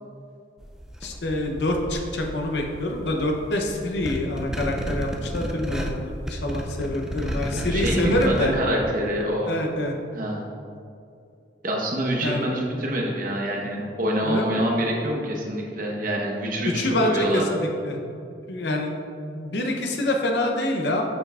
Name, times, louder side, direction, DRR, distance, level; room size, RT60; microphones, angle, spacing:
sound 1, 0.6-8.5, equal, 5° right, 0.4 m, -32 dB
voice 1, 1.0-8.5 9.5-9.9 12.2-12.5 14.2-14.6 16.6-18.0 18.5-18.9 19.3-21.0, left 1 dB, 75° left, 2 dB, 0.7 m, -26 dB
voice 2, 7.7-9.5 10.1-10.5 11.6-17.5, right 1 dB, 50° right, -1 dB, 1.0 m, -26 dB
7.6 x 5.6 x 2.4 m, 2.5 s
head